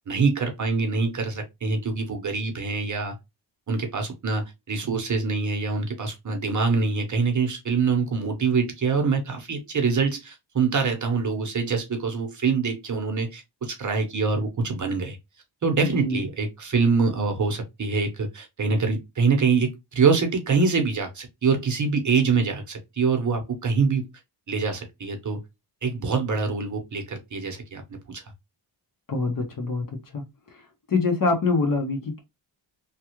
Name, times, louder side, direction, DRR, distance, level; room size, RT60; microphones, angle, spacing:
voice 1, 0.1-3.1 3.7-15.2 15.6-24.1 24.5-25.4 25.8-28.2, right 4 dB, 40° right, 0.9 m, -25 dB
voice 2, 15.8-16.2 29.1-29.8 30.1-30.2 30.5-30.6 30.9-32.2, left 3 dB, 45° left, 1.1 m, -24 dB
3.2 x 2.3 x 2.9 m
wide cardioid pair, 140°, 46 cm